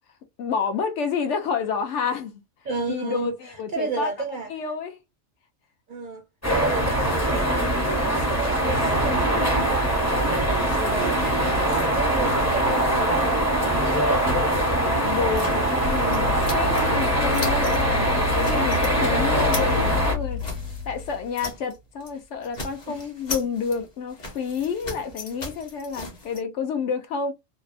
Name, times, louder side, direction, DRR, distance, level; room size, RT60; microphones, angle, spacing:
voice 1, 0.4-2.4 2.9-4.1 4.5-5.0 13.6-14.4 14.7-20.4 20.9-27.3, left 6 dB, 70° left, 0.9 m, -29 dB
voice 2, 2.6-4.5 5.9-6.2 6.5-9.9 10.2-13.4 22.9-23.1, right 3 dB, 55° right, 0.5 m, -32 dB
sound 1, 6.4-20.2, right 1 dB, 20° left, 0.6 m, -22 dB
sound 2, 15.4-17.1 17.3-17.8 18.2-18.9 19.3-21.8 22.0-22.2 22.4-26.4, left 2 dB, 40° left, 0.9 m, -37 dB
sound 3, 15.4-21.3, left 5 dB, 80° right, 1.0 m, -30 dB
2.7 x 2.1 x 2.4 m
omnidirectional pair, 1.3 m